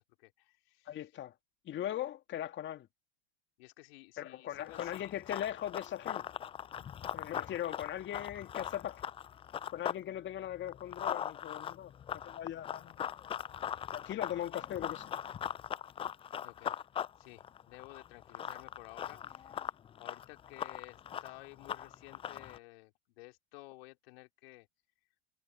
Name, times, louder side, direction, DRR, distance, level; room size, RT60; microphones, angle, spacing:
voice 1, 0.0-1.0 3.6-5.5 5.9-6.0 16.4-16.8 17.2-24.7, left 23 dB, 60° left, 3.6 m, -54 dB
voice 2, 0.9-1.3 1.6-2.9 4.2-6.3 7.1-9.0 9.7-11.9 12.2-13.0 13.9-15.1, left 11 dB, 35° left, 2.3 m, -39 dB
Run, 4.6-10.0 10.4-22.6, left 9 dB, 15° left, 0.4 m, -40 dB
hypercardioid pair, 95°, 33 cm